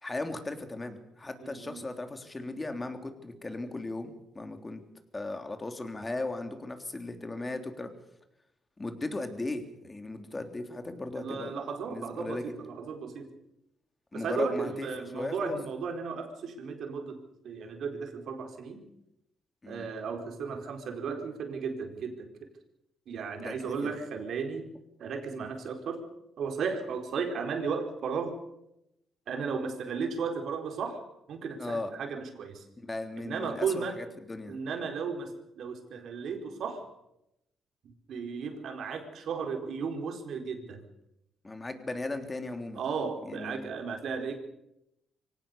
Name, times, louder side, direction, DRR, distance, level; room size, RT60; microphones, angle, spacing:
voice 1, 0.0-4.8 5.1-7.9 8.8-11.5 11.9-12.4 14.1-14.9 15.1-15.6 19.6-19.9 23.4-24.0 31.6-31.9 32.8-34.6 41.4-42.8 43.2-43.7, left 2 dB, 20° left, 6 dB, 3.4 m, -37 dB
voice 2, 1.4-1.9 11.1-13.3 14.1-17.2 17.4-18.9 19.7-22.3 23.1-24.7 25.0-26.1 26.4-28.3 29.3-31.0 31.3-32.6 33.2-34.0 34.5-36.9 37.8-40.8 42.8-44.4, right 5 dB, 65° right, 4 dB, 4.4 m, -35 dB
24.5 x 18.0 x 6.9 m, 0.83 s
cardioid pair, 90°, 0 cm